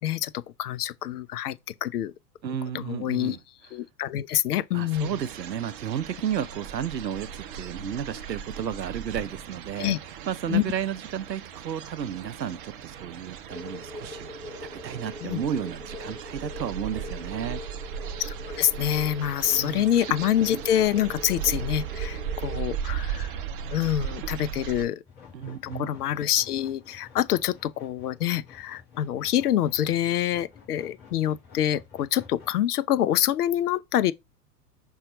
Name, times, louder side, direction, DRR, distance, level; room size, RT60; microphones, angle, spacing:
voice 1, 0.0-2.1 2.7-3.4 3.7-5.1 9.8-10.0 10.5-10.6 15.2-15.4 18.3-23.3 23.7-25.0 25.5-34.1, left 11 dB, 65° left, 0.5 m, -26 dB
voice 2, 2.4-3.4 4.7-9.9 10.3-14.3 14.6-17.6 19.5-19.9 25.3-25.9, right 9 dB, 90° right, 0.5 m, -33 dB
sound 1, 4.9-24.9, right 8 dB, 35° right, 0.5 m, -37 dB
sound 2, 13.5-22.6, left 3 dB, 5° right, 0.8 m, -42 dB
sound 3, 25.1-32.5, left 6 dB, 20° left, 3.1 m, -50 dB
5.5 x 2.3 x 3.8 m
figure-of-eight pair, 100°, 49 cm